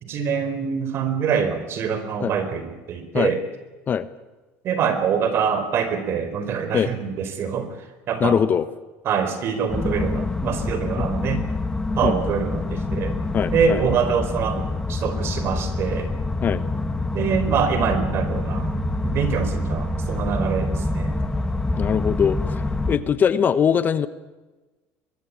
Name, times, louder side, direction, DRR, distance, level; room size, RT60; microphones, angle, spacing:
voice 1, 0.0-3.4 4.6-7.8 8.1-8.4 9.0-11.4 11.9-13.2 13.5-16.1 17.1-18.7 19.0-21.2, right 7 dB, 50° right, 11 dB, 4.7 m, -25 dB
voice 2, 8.2-8.7 11.0-11.1 12.0-12.2 13.3-13.8 16.4-16.6 21.8-24.1, left 7 dB, 35° left, 14 dB, 1.2 m, -21 dB
sound 1, 9.7-23.0, left 2 dB, 10° left, 1.9 m, -26 dB
24.0 x 21.0 x 8.7 m, 1.2 s
supercardioid pair, 115°, 5 cm